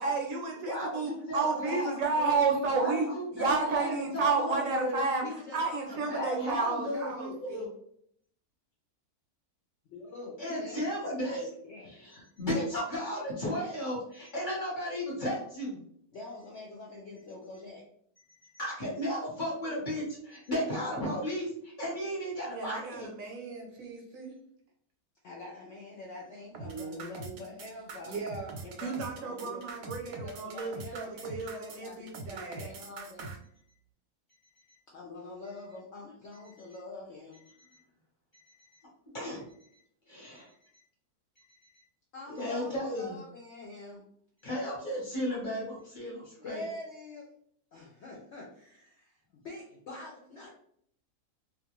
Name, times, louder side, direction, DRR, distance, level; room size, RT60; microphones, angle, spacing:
voice 1, 0.0-3.1 3.3-5.2 5.5-7.6 22.5-24.4 26.6-27.4 28.1-28.5 28.8-32.7, right 4 dB, 65° right, 1 dB, 0.9 m, -32 dB
voice 2, 0.6-1.9 2.7-5.0 6.1-7.7 10.4-11.5 11.8-15.8 18.5-23.1 39.1-39.4 40.1-40.5 42.3-43.2 44.4-46.6, equal, 35° left, -5 dB, 1.0 m, -34 dB
voice 3, 1.7-4.0 5.2-6.7 9.9-10.8 11.2-11.3 11.6-11.9 16.1-17.8 25.2-28.3 28.6-28.9 29.2-29.9 30.2-33.3 34.9-37.4 42.1-44.0 46.4-47.2 47.7-50.5, left 2 dB, 65° left, -3 dB, 0.7 m, -45 dB
sound 1, 26.5-33.4, right 4 dB, 85° right, 1.1 m, -43 dB
2.5 x 2.4 x 2.9 m, 0.66 s
omnidirectional pair, 1.7 m